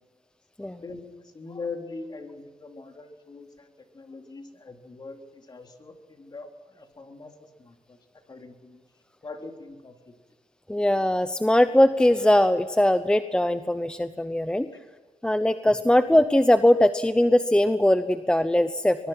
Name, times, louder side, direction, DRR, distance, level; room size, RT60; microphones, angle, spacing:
voice 1, 0.6-8.8 9.2-10.1 15.8-15.9, left 3 dB, 35° left, 4 dB, 3.6 m, -42 dB
voice 2, 10.7-14.7 15.2-19.1, left 1 dB, 5° left, 11 dB, 0.8 m, -21 dB
23.5 x 22.0 x 5.9 m, 1.4 s
cardioid pair, 90°, 12 cm